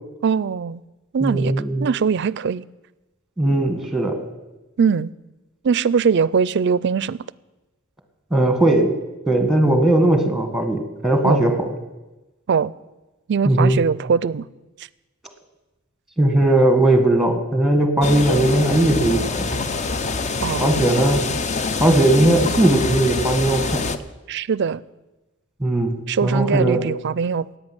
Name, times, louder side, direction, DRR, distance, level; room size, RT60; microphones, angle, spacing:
voice 1, 0.2-0.8 1.1-1.5 1.8-2.6 4.8-5.1 5.6-7.2 11.2-11.4 12.5-12.7 13.3-14.5 20.4-20.7 24.3-24.8 26.1-27.5, right 6 dB, 55° right, 0.4 m, -21 dB
voice 2, 1.2-1.9 3.4-4.2 8.3-8.9 9.3-11.5 13.4-13.8 16.2-19.7 20.6-21.2 21.8-23.8 25.6-26.8, right 1 dB, ahead, 1.7 m, -18 dB
sound 1, 18.0-24.0, left 4 dB, 35° left, 0.6 m, -25 dB
10.5 x 8.9 x 9.7 m
head